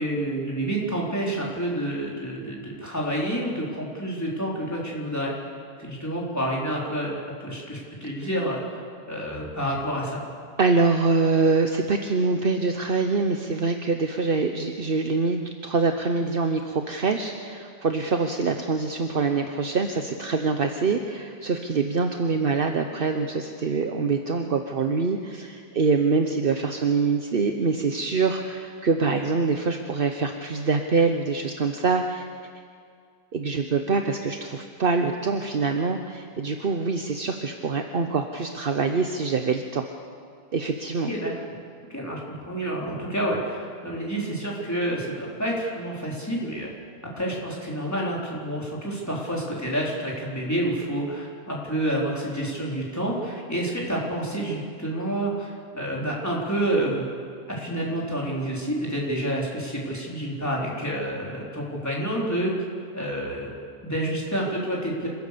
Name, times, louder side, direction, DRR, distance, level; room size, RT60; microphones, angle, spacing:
voice 1, 0.0-5.3 5.8-8.6 9.1-10.2 41.1-41.3 41.9-46.7 47.2-57.1 57.5-62.6 62.9-63.5 63.8-65.1, right 1 dB, 15° left, -4 dB, 4.3 m, -28 dB
voice 2, 10.6-32.3 33.3-39.8 40.5-41.1, right 4 dB, 60° right, 5 dB, 1.2 m, -24 dB
27.0 x 16.0 x 6.9 m, 2.2 s
omnidirectional pair, 1.1 m